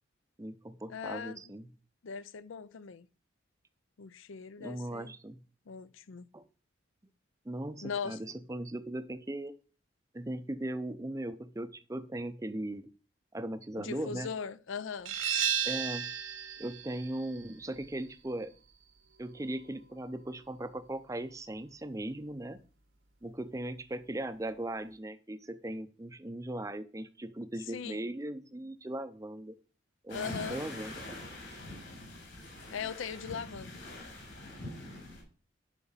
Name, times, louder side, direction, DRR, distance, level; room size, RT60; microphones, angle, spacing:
voice 1, 0.4-1.7 4.6-5.4 6.3-6.5 7.5-9.5 10.1-12.9 13.3-14.3 15.6-16.1 16.6-18.5 19.2-22.6 23.2-29.6 30.0-31.2, right 1 dB, 15° right, 0.5 m, -38 dB
voice 2, 0.9-1.4 2.0-3.1 4.0-5.1 5.7-6.3 7.8-8.2 13.8-15.2 27.7-28.1 30.1-30.6 32.7-33.8, left 6 dB, 75° left, 0.5 m, -39 dB
sound 1, 15.1-20.5, right 8 dB, 85° right, 1.3 m, -36 dB
sound 2, 30.1-35.2, left 1 dB, 60° left, 4.3 m, -44 dB
11.0 x 4.4 x 5.6 m
head